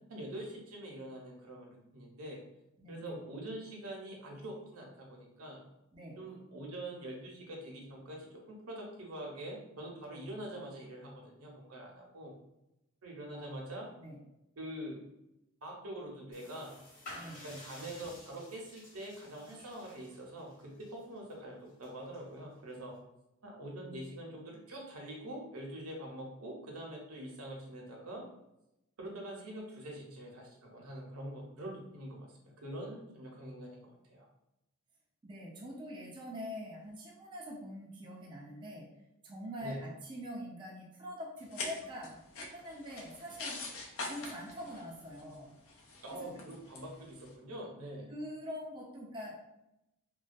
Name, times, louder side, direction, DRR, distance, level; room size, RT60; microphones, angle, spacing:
voice 1, 0.1-2.4 2.9-5.6 6.2-12.3 13.0-13.9 14.6-15.0 15.6-16.8 17.4-22.9 23.4-28.2 29.0-32.3 32.6-34.3 39.6-39.8 46.0-48.1, right 1 dB, 80° right, -1 dB, 0.7 m, -44 dB
voice 2, 2.8-3.2 5.9-6.2 13.3-13.6 14.0-14.2 17.1-17.4 35.2-38.9 39.2-42.2 42.5-43.6 44.0-45.5 46.3-46.4 48.1-49.4, equal, 20° right, -3 dB, 0.3 m, -44 dB
sound 1, 16.3-23.0, left 1 dB, 40° left, 0.8 m, -53 dB
sound 2, 41.4-47.3, left 3 dB, 65° left, 0.5 m, -45 dB
2.2 x 2.2 x 2.5 m, 0.87 s
head